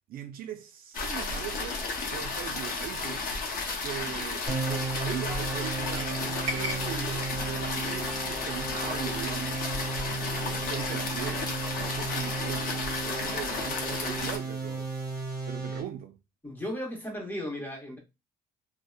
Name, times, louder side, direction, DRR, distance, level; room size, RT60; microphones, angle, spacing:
voice 1, 0.1-1.8 2.1-3.3 3.8-9.6 10.1-14.9 15.5-16.2, right 10 dB, 60° right, 0.4 m, -40 dB
sound 1, 0.9-14.4, left 3 dB, 55° left, 0.7 m, -33 dB
sound 2, 4.5-15.8, right 4 dB, 20° right, 1.4 m, -35 dB
sound 3, 4.6-9.8, equal, 40° right, 0.8 m, -42 dB
voice 2, 16.4-18.0, left 1 dB, 10° left, 1.0 m, -35 dB
2.7 x 2.1 x 2.2 m
cardioid pair, 110°, 17 cm